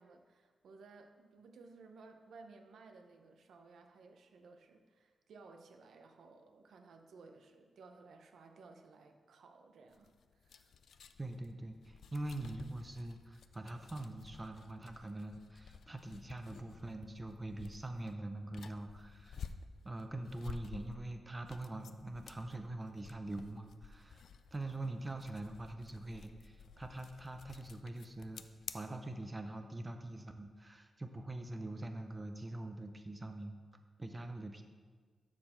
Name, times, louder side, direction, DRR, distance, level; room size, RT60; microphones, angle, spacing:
voice 1, 0.0-10.8, right 4 dB, 85° right, 5 dB, 0.7 m, -58 dB
sound 1, 9.9-28.7, left 6 dB, 70° left, 0.4 m, -53 dB
voice 2, 11.2-19.5 19.8-28.5 28.7-33.5 34.0-34.6, right 2 dB, 15° right, 6 dB, 0.5 m, -44 dB
12.0 x 4.5 x 4.4 m, 1.5 s
wide cardioid pair, 160°, 0 cm